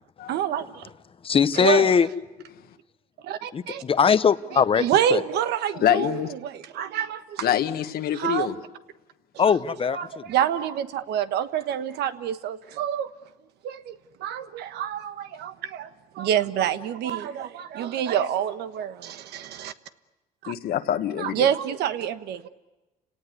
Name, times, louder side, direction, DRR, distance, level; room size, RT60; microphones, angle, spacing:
voice 1, 0.3-0.8 1.6-1.9 3.2-3.8 4.5-7.5 8.1-8.5 9.4-9.5 9.9-13.1 13.6-19.7 20.4-20.5 21.2-22.5, right 10 dB, 80° right, 1.3 m, -27 dB
voice 2, 1.2-2.1 3.5-4.8 5.1-5.2 9.4-10.2, left 7 dB, 35° left, 0.9 m, -20 dB
voice 3, 5.8-6.3 7.4-8.6 20.5-21.5, left 11 dB, 65° left, 1.5 m, -25 dB
29.5 x 18.0 x 9.6 m
cardioid pair, 110°, 17 cm